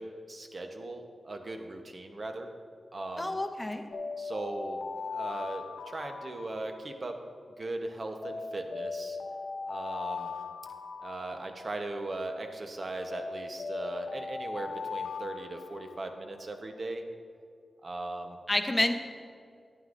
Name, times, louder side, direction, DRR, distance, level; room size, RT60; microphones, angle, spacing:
voice 1, 0.0-2.5 2.9-3.4 4.2-7.2 7.6-9.2 9.7-10.3 11.0-17.0 17.8-18.4, right 2 dB, 55° right, 5 dB, 0.9 m, -38 dB
voice 2, 3.2-3.8 18.5-18.9, left 1 dB, 20° left, 5 dB, 0.8 m, -28 dB
sound 1, 3.9-7.1 8.2-12.0 13.1-16.3, left 4 dB, 80° left, 0.7 m, -39 dB
11.0 x 9.4 x 2.6 m, 2.3 s
cardioid pair, 50°, 0 cm